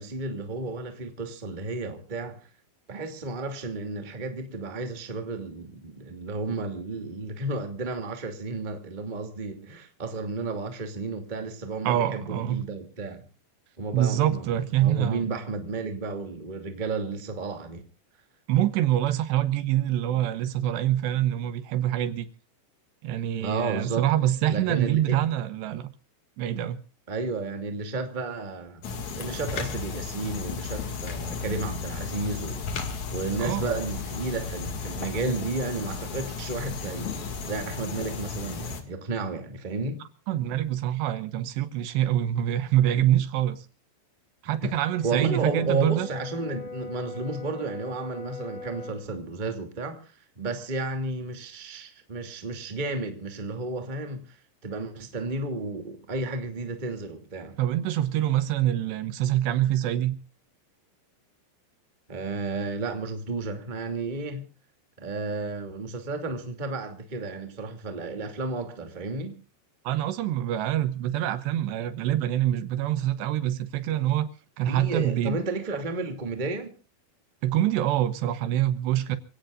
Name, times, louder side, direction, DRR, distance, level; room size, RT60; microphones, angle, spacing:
voice 1, 0.0-2.4 2.9-13.2 13.8-17.8 23.4-24.1 24.5-25.2 27.1-28.8 29.1-32.7 33.1-40.0 44.6-44.7 45.0-54.4 54.6-57.6 62.1-64.4 65.0-69.4 74.6-76.7, right 3 dB, 15° right, 1.7 m, -32 dB
voice 2, 11.8-12.7 13.9-15.3 18.5-22.3 23.0-25.9 26.4-26.8 33.4-33.7 40.3-43.6 44.4-46.1 57.6-60.1 69.8-74.3 74.6-75.4 77.4-79.2, right 12 dB, 75° right, 3.2 m, -25 dB
sound 1, 28.8-38.8, left 5 dB, 50° left, 3.0 m, -34 dB
Brass instrument, 44.8-49.1, left 3 dB, 65° left, 7.1 m, -40 dB
27.5 x 17.0 x 2.5 m
omnidirectional pair, 5.1 m